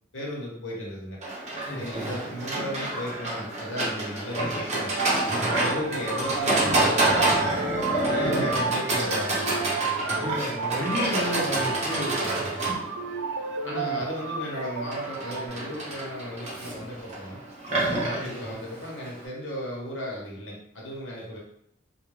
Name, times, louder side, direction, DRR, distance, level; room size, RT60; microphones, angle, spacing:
voice 1, 0.1-1.2 1.8-4.9 5.2-9.7 12.4-12.7 13.6-17.4 17.8-21.4, equal, 75° left, -3 dB, 0.9 m, -35 dB
Livestock farm animals working animals, 1.2-19.2, right 2 dB, 35° right, 0.7 m, -28 dB
voice 2, 1.7-2.2 8.2-8.4 10.0-12.4 12.7-12.8 13.6-14.1 18.2-18.5, left 1 dB, 10° left, -6 dB, 0.6 m, -33 dB
sound 1, 4.9-15.5, right 4 dB, 70° right, 0.3 m, -32 dB
2.4 x 2.2 x 3.1 m, 0.75 s
head